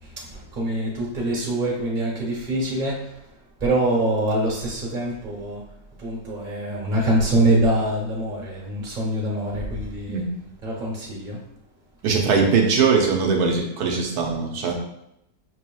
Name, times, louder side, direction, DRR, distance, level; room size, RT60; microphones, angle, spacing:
voice 1, 0.0-5.7 6.0-10.3 10.6-11.4, right 1 dB, 30° right, -3 dB, 1.2 m, -25 dB
voice 2, 12.0-14.7, right 5 dB, 85° right, 1 dB, 1.2 m, -20 dB
6.3 x 2.9 x 2.3 m, 0.81 s
omnidirectional pair, 1.6 m